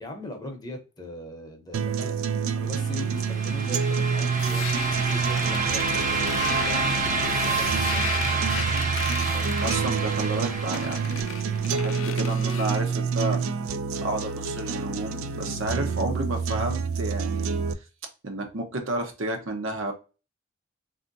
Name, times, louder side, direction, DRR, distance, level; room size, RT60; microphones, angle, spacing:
voice 1, 0.0-8.6 9.3-9.6, left 1 dB, 20° left, 0.7 m, -41 dB
sound 1, 1.7-17.7, right 5 dB, 90° right, 0.4 m, -28 dB
sound 2, 2.8-11.7, right 3 dB, 40° right, 0.7 m, -28 dB
sound 3, 4.4-12.9, left 9 dB, 80° left, 0.4 m, -38 dB
voice 2, 9.6-11.2 11.6-13.4 14.0-17.6 18.2-19.9, right 2 dB, 70° right, 0.8 m, -31 dB
3.5 x 2.6 x 2.5 m
head